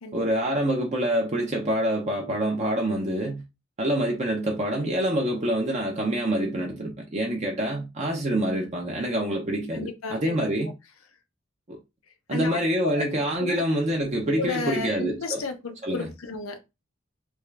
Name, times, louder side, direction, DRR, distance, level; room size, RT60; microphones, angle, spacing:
voice 1, 0.1-3.4 3.8-10.7 11.7-11.8 12.3-15.4 15.8-16.1, right 1 dB, 35° right, 0.7 m, -26 dB
voice 2, 9.7-10.4 12.3-13.0 13.4-13.6 14.4-16.6, left 4 dB, 85° left, 0.7 m, -33 dB
3.5 x 2.4 x 3.3 m
head